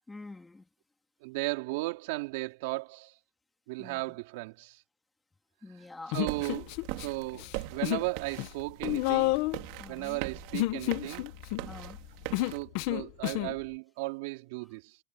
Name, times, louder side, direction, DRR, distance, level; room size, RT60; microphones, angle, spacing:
voice 1, 0.1-0.7 3.8-4.0 5.6-6.2 9.8-10.2 11.6-12.0, left 2 dB, 10° left, 3.0 m, -46 dB
voice 2, 1.2-3.1 3.7-4.8 6.1-7.5 7.7-9.4 9.9-11.3 12.4-15.0, right 23 dB, 90° right, 4.5 m, -36 dB
Human voice, 6.1-7.1 7.3-8.1 8.4-13.6, left 19 dB, 70° left, 1.3 m, -31 dB
sound 1, 6.3-12.6, right 22 dB, 75° right, 2.8 m, -41 dB
cardioid pair, 155°, 0 cm